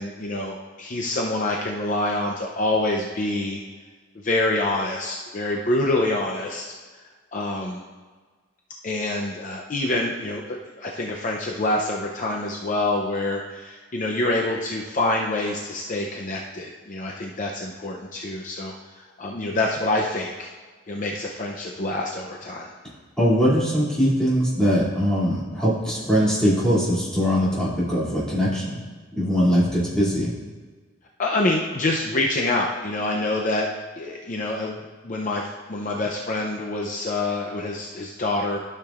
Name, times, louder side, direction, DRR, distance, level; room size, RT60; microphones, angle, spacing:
voice 1, 0.0-3.6 4.2-6.7 6.9-7.8 8.8-20.5 20.9-22.7 31.2-33.7 34.0-38.6, left 2 dB, 40° left, 0 dB, 0.6 m, -26 dB
voice 2, 23.2-28.8 29.2-30.3, equal, 5° left, -9 dB, 2.6 m, -21 dB
12.0 x 6.7 x 2.5 m, 1.4 s
head